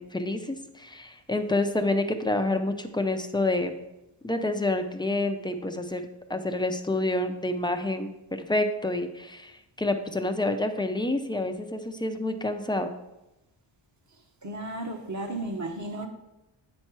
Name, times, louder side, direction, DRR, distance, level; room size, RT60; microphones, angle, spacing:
voice 1, 0.0-3.7 4.2-6.0 6.3-9.5 9.8-12.9, left 2 dB, 10° left, 6 dB, 0.4 m, -28 dB
voice 2, 14.4-16.1, right 2 dB, 35° right, 4 dB, 1.0 m, -34 dB
8.7 x 4.3 x 4.6 m, 0.93 s
wide cardioid pair, 135°, 49 cm